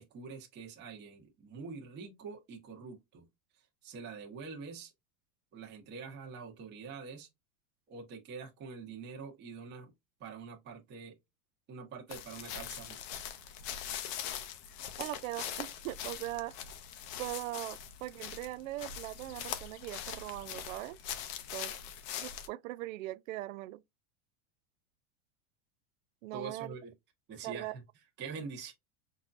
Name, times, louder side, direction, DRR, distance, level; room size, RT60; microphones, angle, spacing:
voice 1, 0.0-3.2 3.8-4.9 5.5-7.3 7.9-9.9 10.2-11.1 11.7-13.3 26.3-26.9 27.3-27.8 28.2-28.7, right 5 dB, 25° right, 1.3 m, -45 dB
sound 1, 12.1-22.5, left 9 dB, 30° left, 0.5 m, -42 dB
voice 2, 15.0-16.6 17.2-21.0 21.5-21.8 22.2-23.8 26.2-26.7 27.4-27.8, right 17 dB, 75° right, 0.5 m, -40 dB
6.1 x 2.7 x 2.5 m
supercardioid pair, 170°, 40 cm